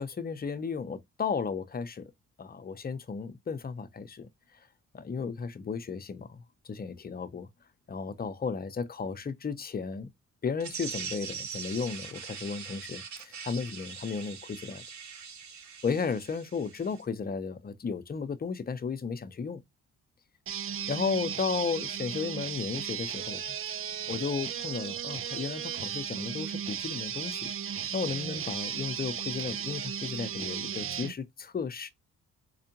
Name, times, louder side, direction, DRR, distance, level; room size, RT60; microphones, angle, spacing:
voice 1, 0.0-2.1 2.4-4.3 4.9-7.5 7.9-10.1 10.4-14.8 15.8-19.6 20.9-23.4 24.1-27.5 27.9-31.9, left 5 dB, 30° left, 0.7 m, -34 dB
sound 1, 10.6-17.0, right 6 dB, 60° right, 1.0 m, -42 dB
sound 2, 20.5-31.1, right 9 dB, 40° right, 0.5 m, -35 dB
4.5 x 2.4 x 2.8 m
supercardioid pair, 60°, 33 cm